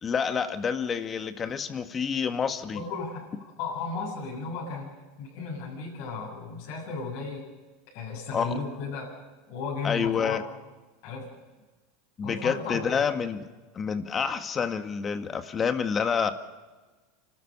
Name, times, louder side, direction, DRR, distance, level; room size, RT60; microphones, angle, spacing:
voice 1, 0.0-2.8 8.3-8.6 9.8-10.4 12.2-13.4 13.7-16.3, left 6 dB, 30° left, 8 dB, 1.8 m, -28 dB
voice 2, 2.7-7.5 7.9-9.1 9.5-10.4 11.0-11.3 12.2-13.0, left 4 dB, 65° left, -6 dB, 7.3 m, -35 dB
29.5 x 13.0 x 6.7 m, 1.3 s
hypercardioid pair, 100°, 0 cm